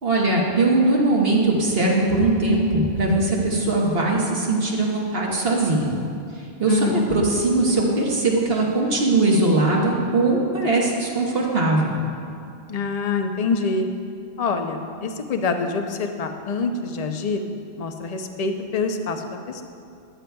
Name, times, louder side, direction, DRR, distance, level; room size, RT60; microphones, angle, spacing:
voice 1, 0.0-5.9 6.6-11.9, right 2 dB, 65° right, -2 dB, 1.5 m, -20 dB
voice 2, 6.7-7.1 12.7-13.9 14.4-17.4 17.8-19.6, left 3 dB, 45° left, 6 dB, 0.6 m, -25 dB
13.5 x 9.9 x 2.3 m, 2.5 s
omnidirectional pair, 1.1 m